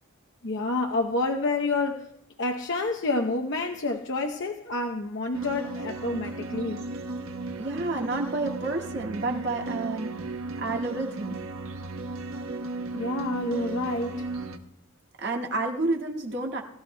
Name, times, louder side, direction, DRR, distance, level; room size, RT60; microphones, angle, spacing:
voice 1, 0.4-2.1 2.4-6.9 12.9-14.3, left 2 dB, 60° left, 3 dB, 0.8 m, -28 dB
sound 1, 5.3-14.6, right 2 dB, 90° right, 1.2 m, -35 dB
voice 2, 7.6-10.1 10.6-11.4 15.2-16.6, right 2 dB, 55° right, 1 dB, 2.0 m, -29 dB
21.0 x 13.5 x 2.2 m, 0.83 s
head